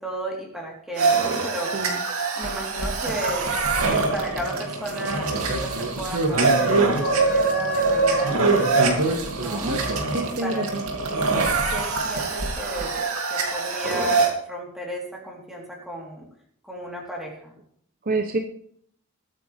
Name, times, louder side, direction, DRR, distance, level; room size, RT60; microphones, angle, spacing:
voice 1, 0.0-9.7 10.4-11.4 11.7-16.3 16.6-17.6, right 1 dB, ahead, -3 dB, 3.8 m, -35 dB
sound 1, 1.0-14.3, right 3 dB, 70° right, 2.6 m, -23 dB
voice 2, 10.1-10.8 18.1-18.4, right 2 dB, 40° right, 5 dB, 0.9 m, -27 dB
21.5 x 9.2 x 3.5 m, 0.65 s
head